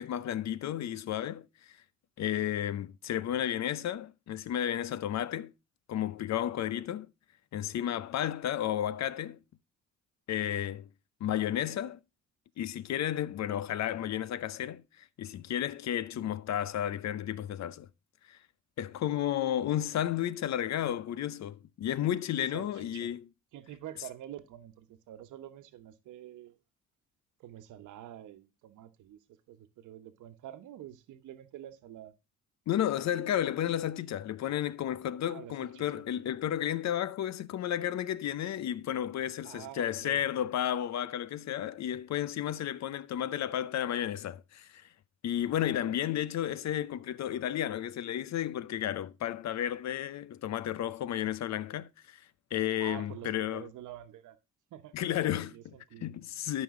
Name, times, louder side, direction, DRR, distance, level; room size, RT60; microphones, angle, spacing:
voice 1, 0.0-1.8 2.2-5.5 5.9-7.1 7.5-9.4 10.3-10.9 11.2-12.0 12.6-17.9 18.3-18.4 18.8-23.3 32.7-44.9 45.2-53.7 54.9-56.6, left 11 dB, 65° left, 0.7 m, -32 dB
voice 2, 22.4-23.1 23.5-26.6 27.4-29.2 29.5-32.1 35.2-36.0 39.4-40.2 52.8-54.4 54.7-55.0 55.5-56.1, right 12 dB, 85° right, 1.1 m, -47 dB
12.5 x 5.4 x 3.7 m
cardioid pair, 90°, 30 cm